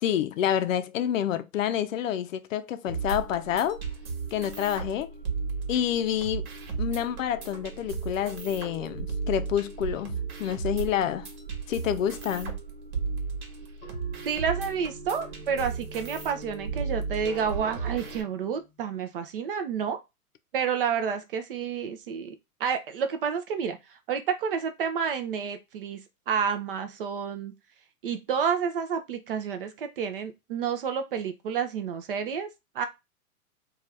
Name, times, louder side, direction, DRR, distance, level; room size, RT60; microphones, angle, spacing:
voice 1, 0.0-3.8 4.3-5.1 5.7-6.5 6.8-11.3 11.7-12.6, left 10 dB, 60° left, 0.5 m, -28 dB
sound 1, 2.9-18.2, right 5 dB, 70° right, 1.3 m, -35 dB
sound 2, 13.8-18.9, right 2 dB, 20° left, 1.0 m, -49 dB
voice 2, 14.3-20.0 20.5-22.3 22.6-23.8 24.1-26.0 26.3-27.5 28.0-32.5 32.7-32.8, right 7 dB, 40° right, 0.4 m, -29 dB
2.6 x 2.4 x 3.2 m
hypercardioid pair, 130°, 44 cm